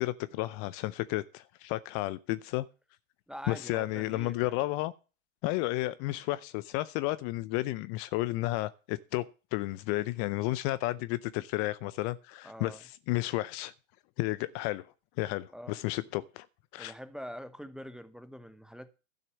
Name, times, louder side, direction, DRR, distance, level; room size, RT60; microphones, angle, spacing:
voice 1, 0.0-2.7 3.5-4.9 5.4-13.7 14.2-14.9 15.2-16.5 16.7-16.9, left 18 dB, 35° left, 0.6 m, -32 dB
voice 2, 3.3-4.6 12.4-12.8 15.5-15.8 16.8-18.9, equal, ahead, 0.8 m, -44 dB
12.5 x 6.6 x 7.1 m
hypercardioid pair, 110°, 38 cm